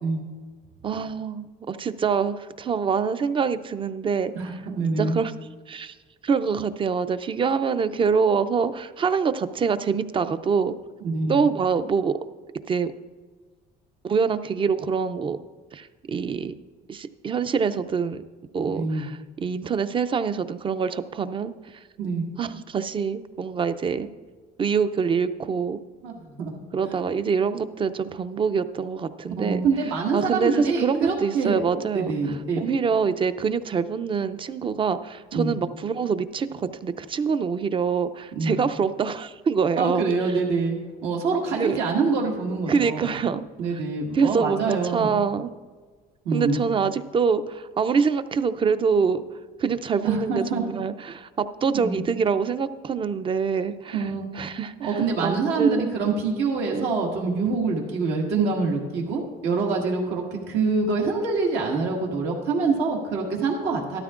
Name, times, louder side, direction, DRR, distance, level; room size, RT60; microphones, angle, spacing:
voice 1, 0.8-4.3 5.0-5.3 5.7-5.9 6.2-10.7 11.3-12.2 12.7-12.9 14.0-15.4 15.7-16.5 16.9-18.2 18.5-21.5 22.4-24.1 24.6-25.8 26.7-29.6 30.1-32.1 32.6-40.1 41.6-41.8 42.7-43.4 44.1-45.5 46.3-49.2 49.6-54.1 54.3-56.0 56.7-56.9, right 6 dB, 30° right, 12 dB, 0.5 m, -25 dB
voice 2, 4.4-5.2 11.0-11.4 18.7-19.0 22.0-22.2 26.0-26.5 29.4-31.6 31.9-32.7 35.3-35.5 38.4-38.6 39.8-43.1 43.6-45.1 46.3-46.6 50.0-50.6 51.7-52.0 53.9-54.3 54.8-64.0, right 4 dB, 85° right, -1 dB, 1.8 m, -25 dB
13.0 x 12.0 x 2.5 m, 1.4 s
cardioid pair, 110°, 17 cm